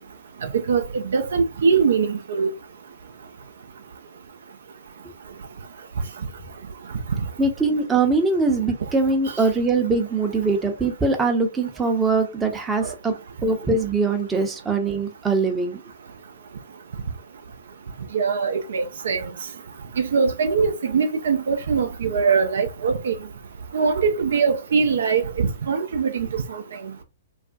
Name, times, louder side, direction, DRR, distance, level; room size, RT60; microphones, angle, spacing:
voice 1, 0.4-2.5 12.8-12.9 18.1-19.2 20.0-23.1 23.7-26.6, right 5 dB, 70° right, 0.4 m, -22 dB
voice 2, 7.4-13.1 13.4-15.8, right 3 dB, 10° right, 0.6 m, -22 dB
2.4 x 2.1 x 2.5 m
hypercardioid pair, 120°, 0 cm